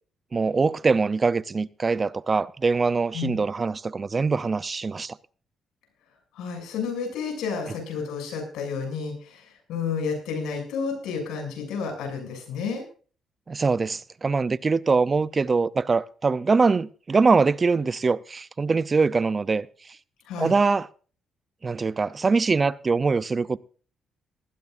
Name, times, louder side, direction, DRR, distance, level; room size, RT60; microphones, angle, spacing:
voice 1, 0.3-5.2 13.5-19.7 20.4-20.9 21.6-23.6, right 4 dB, 30° right, 0.6 m, -23 dB
voice 2, 6.4-12.8 20.3-20.5, left 5 dB, 85° left, 7.0 m, -31 dB
19.0 x 15.5 x 2.6 m
cardioid pair, 90°, 0 cm